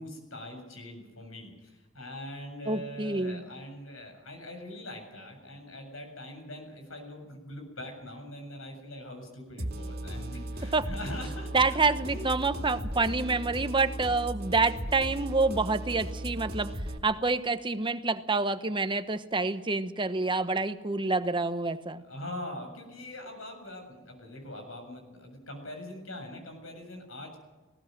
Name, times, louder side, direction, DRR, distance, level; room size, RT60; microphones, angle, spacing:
voice 1, 0.0-12.3 22.0-27.4, left 1 dB, 90° left, 4 dB, 7.5 m, -42 dB
voice 2, 2.7-3.4 10.7-10.9 11.5-16.7 17.0-22.0, right 3 dB, 25° right, 11 dB, 1.1 m, -27 dB
sound 1, 9.6-17.0, right 1 dB, 50° right, 2.5 m, -36 dB
20.0 x 17.5 x 7.8 m, 1.2 s
head